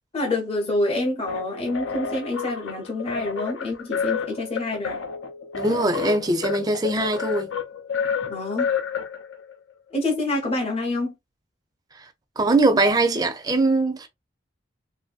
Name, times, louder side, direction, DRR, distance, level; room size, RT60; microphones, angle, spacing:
voice 1, 0.1-5.0 8.2-8.7 9.9-11.1, left 2 dB, 30° left, 0.6 m, -27 dB
sound 1, 1.3-9.5, left 6 dB, 90° left, 0.5 m, -30 dB
voice 2, 5.6-7.5 12.4-14.1, right 2 dB, 20° right, 0.4 m, -21 dB
2.9 x 2.6 x 2.3 m
head